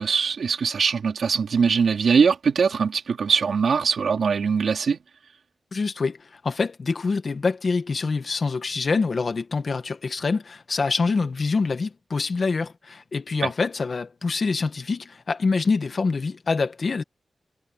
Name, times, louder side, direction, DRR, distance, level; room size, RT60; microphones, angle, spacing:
voice 1, 0.0-5.0 13.4-13.5, right 5 dB, 80° right, 3.2 m, -22 dB
voice 2, 5.7-17.0, left 4 dB, 45° left, 1.7 m, -25 dB
wide cardioid pair, 170°, 0 cm